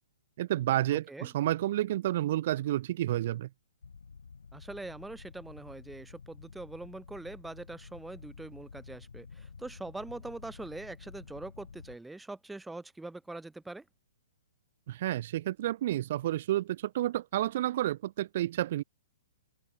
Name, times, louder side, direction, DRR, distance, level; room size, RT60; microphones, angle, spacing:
voice 1, 0.4-3.5 14.9-18.8, right 13 dB, 45° right, 0.7 m, -30 dB
voice 2, 0.9-1.3 4.5-13.8, right 2 dB, 5° right, 1.6 m, -43 dB
sound 1, 3.8-12.0, left 5 dB, 70° left, 4.7 m, -50 dB
figure-of-eight pair, 115°, 0 cm